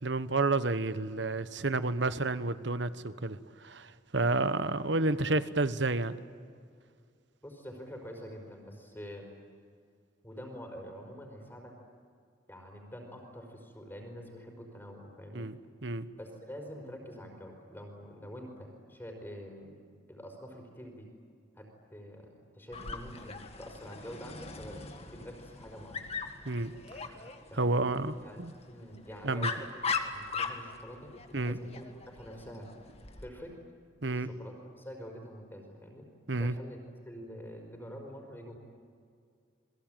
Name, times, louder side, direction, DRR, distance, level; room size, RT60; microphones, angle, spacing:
voice 1, 0.0-6.2 15.3-15.6 15.8-16.1 26.4-26.7 27.5-28.5 29.2-29.5 31.3-31.6 34.0-34.3 36.3-36.6, right 2 dB, 65° right, 13 dB, 1.2 m, -30 dB
voice 2, 7.4-9.3 10.2-11.8 12.5-15.5 16.2-19.8 20.1-21.1 21.5-26.0 27.5-27.8 28.2-28.4 28.7-29.7 30.0-31.1 31.5-32.7 33.2-33.6 34.0-36.1 36.4-36.8 37.0-38.6, equal, 10° left, 2 dB, 4.8 m, -46 dB
Dog, 22.7-33.3, left 5 dB, 30° left, 1.8 m, -40 dB
29.5 x 22.0 x 9.2 m, 2.2 s
head